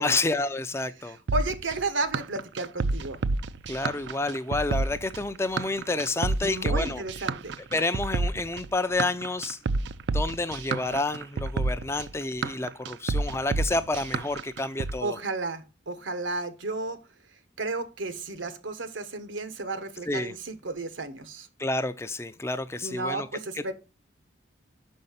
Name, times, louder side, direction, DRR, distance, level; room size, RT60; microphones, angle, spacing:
voice 1, 0.0-1.2 3.7-7.0 7.7-15.2 20.1-20.3 21.6-23.3 23.5-23.7, left 2 dB, 15° left, 0.4 m, -29 dB
voice 2, 1.0-3.2 6.4-7.6 15.0-17.0 17.6-21.5 22.8-23.7, right 3 dB, 90° right, 1.1 m, -33 dB
sound 1, 1.3-14.9, right 3 dB, 65° right, 0.4 m, -29 dB
5.6 x 5.4 x 5.6 m
head